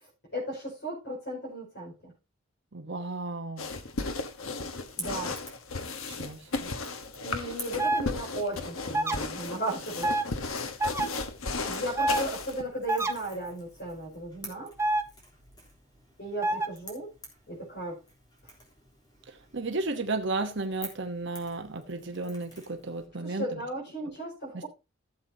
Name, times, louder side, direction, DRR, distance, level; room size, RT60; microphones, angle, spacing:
voice 1, 0.3-2.1 5.0-5.3 7.2-10.2 11.6-14.7 16.2-17.1 17.5-18.0 23.2-24.7, right 1 dB, 50° left, 5.4 m, -35 dB
voice 2, 2.7-3.7 6.1-6.7 19.5-23.5 24.5-24.6, right 3 dB, 55° right, 1.0 m, -33 dB
sound 1, 3.6-12.6, left 3 dB, 75° left, 1.2 m, -35 dB
Crackle / Crack, 4.7-23.1, left 1 dB, 20° left, 3.4 m, -50 dB
sound 2, 7.8-8.0 8.9-9.2 10.0-10.2 10.8-11.1 12.0-12.2 12.9-13.1 14.8-15.0 16.4-16.7, right 2 dB, 10° right, 0.7 m, -26 dB
15.5 x 7.8 x 2.8 m
head